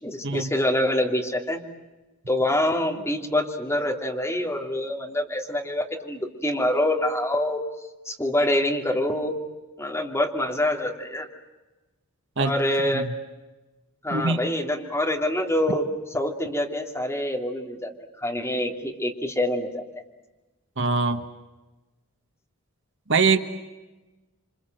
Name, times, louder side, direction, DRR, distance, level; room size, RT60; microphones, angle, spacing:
voice 1, 0.0-1.6 2.3-7.6 8.0-9.4 9.8-11.3 12.4-13.0 14.0-15.9 16.1-17.9 18.2-19.8, left 1 dB, 10° left, 1 dB, 2.9 m, -25 dB
voice 2, 14.1-14.4 20.8-21.2 23.1-23.4, right 4 dB, 55° right, 8 dB, 1.4 m, -22 dB
27.5 x 26.5 x 7.9 m, 1.1 s
head